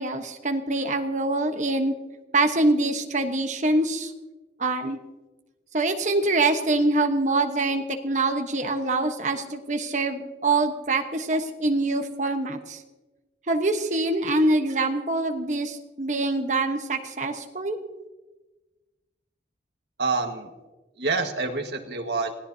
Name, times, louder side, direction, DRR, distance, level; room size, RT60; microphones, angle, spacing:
voice 1, 0.0-1.9 2.3-4.1 4.6-5.0 5.7-12.8 13.5-17.8, right 2 dB, 40° right, 5 dB, 1.2 m, -24 dB
voice 2, 20.0-20.5 21.0-22.3, right 3 dB, 70° right, 4 dB, 1.7 m, -27 dB
26.0 x 17.0 x 2.8 m, 1.2 s
head